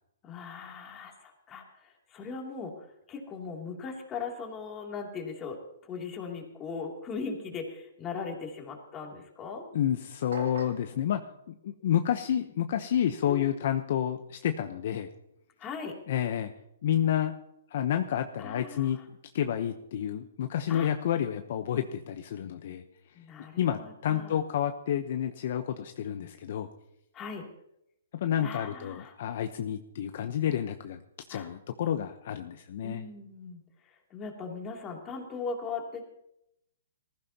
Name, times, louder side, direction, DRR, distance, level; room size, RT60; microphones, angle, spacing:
voice 1, 0.2-9.6 13.2-13.5 15.6-16.0 18.4-19.0 20.7-20.9 23.1-24.4 27.1-27.5 28.4-29.1 31.3-31.5 32.8-36.0, left 5 dB, 20° left, 1 dB, 3.0 m, -39 dB
voice 2, 9.7-15.1 16.1-16.5 16.8-17.3 17.7-19.0 19.3-22.8 23.6-26.7 28.1-31.0 31.3-33.0, left 10 dB, 55° left, 7 dB, 1.0 m, -30 dB
sound 1, 10.3-10.9, right 5 dB, 80° right, 2.1 m, -41 dB
19.5 x 15.0 x 3.0 m, 0.79 s
hypercardioid pair, 155°, 0 cm